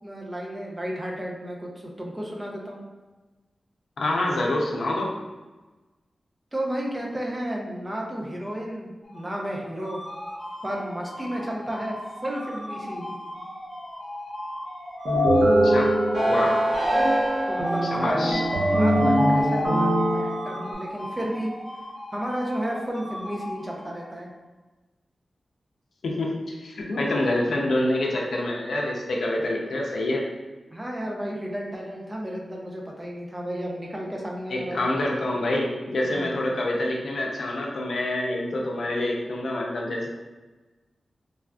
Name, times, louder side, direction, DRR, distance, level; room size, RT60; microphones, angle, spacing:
voice 1, 0.0-2.8 6.5-10.0 10.6-13.2 16.4-16.8 17.5-21.5 22.1-24.3 30.7-34.8 36.1-36.4, equal, 20° right, -2 dB, 0.5 m, -32 dB
voice 2, 4.0-5.1 15.6-15.9 16.2-16.5 17.9-18.4 26.0-30.2 34.5-40.1, left 1 dB, 85° left, -1 dB, 0.5 m, -26 dB
sound 1, 9.0-24.3, left 1 dB, 30° left, 0.6 m, -38 dB
sound 2, 15.0-20.7, equal, 55° right, 0.8 m, -21 dB
3.3 x 2.5 x 2.3 m, 1.2 s
wide cardioid pair, 105°, 0 cm